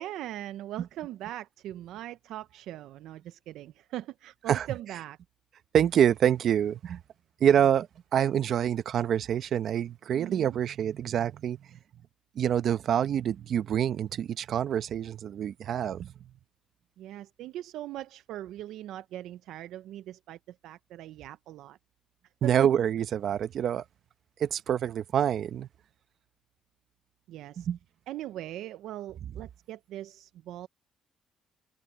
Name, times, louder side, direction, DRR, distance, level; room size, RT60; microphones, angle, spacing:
voice 1, 0.0-5.2 10.1-10.6 17.0-21.8 22.4-22.7 27.3-27.7 28.1-30.7, right 13 dB, 90° right, 0.5 m, -40 dB
voice 2, 5.7-7.0 7.4-11.6 12.4-16.1 22.4-23.8 24.4-25.7 27.6-27.8, right 9 dB, 65° right, 0.8 m, -26 dB
open air
cardioid pair, 90°, 0 cm